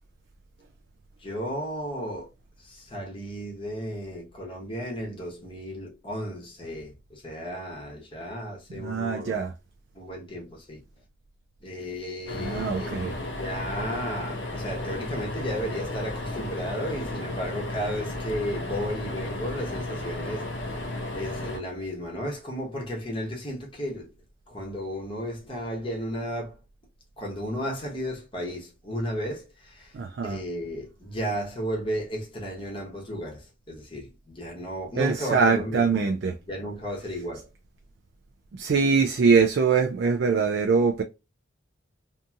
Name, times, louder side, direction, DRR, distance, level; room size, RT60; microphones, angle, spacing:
voice 1, 1.2-2.3 2.6-9.4 9.9-10.8 11.6-24.1 24.5-26.6 27.2-30.0 30.2-36.0 36.5-37.5, equal, 25° left, 0.9 m, -34 dB
voice 2, 8.7-9.5 12.4-13.1 29.9-30.4 35.0-36.3 38.6-41.0, right 5 dB, 55° right, 0.3 m, -23 dB
sound 1, 12.3-21.6, left 1 dB, 65° left, 0.6 m, -34 dB
2.7 x 2.6 x 2.3 m
head